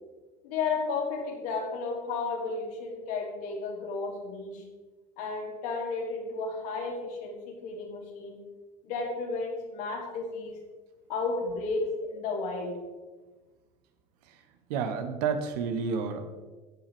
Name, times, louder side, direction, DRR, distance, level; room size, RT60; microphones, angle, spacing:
voice 1, 0.4-4.6 5.2-8.4 8.8-10.6 11.1-12.8, left 4 dB, 65° left, -1 dB, 3.0 m, -33 dB
voice 2, 14.7-16.2, right 6 dB, 70° right, 8 dB, 1.3 m, -30 dB
16.0 x 7.3 x 3.6 m, 1.3 s
hypercardioid pair, 75°, 21 cm